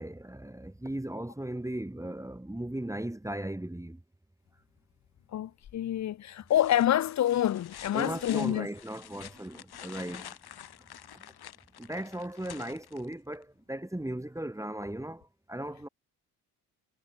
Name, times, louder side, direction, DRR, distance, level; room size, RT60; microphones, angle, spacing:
voice 1, 0.0-4.0 7.9-10.4 11.1-11.3 11.8-15.9, right 1 dB, 5° right, 1.7 m, -37 dB
voice 2, 5.3-8.7, left 11 dB, 40° left, 0.6 m, -27 dB
sound 1, 5.6-6.0 6.5-13.4 15.2-15.3, left 10 dB, 60° left, 3.5 m, -48 dB
supercardioid pair, 60°, 42 cm